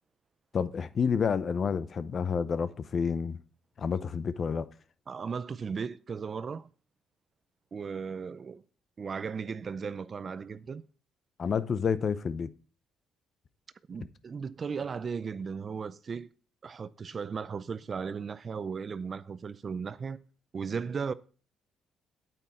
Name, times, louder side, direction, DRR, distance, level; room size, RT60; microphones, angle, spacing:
voice 1, 0.5-3.4 3.8-4.7 11.4-12.5, left 6 dB, 40° left, 0.7 m, -29 dB
voice 2, 5.1-6.7 7.7-8.6 9.0-10.8 13.9-16.3 16.6-20.2 20.5-21.1, right 5 dB, 35° right, 0.5 m, -36 dB
8.8 x 8.5 x 4.3 m
cardioid pair, 120°, 0 cm